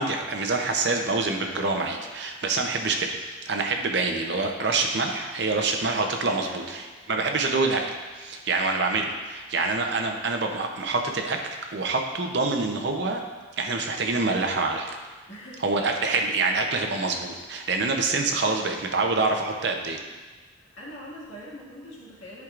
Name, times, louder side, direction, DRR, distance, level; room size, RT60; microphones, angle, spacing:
voice 1, 0.0-3.1 3.5-11.4 11.7-13.2 13.6-14.9 15.6-20.0, right 3 dB, 60° right, 3 dB, 0.7 m, -26 dB
voice 2, 6.2-6.7 7.1-7.3 15.3-15.6 20.5-22.4, equal, 75° left, -6 dB, 2.0 m, -43 dB
10.5 x 4.7 x 2.5 m, 1.3 s
head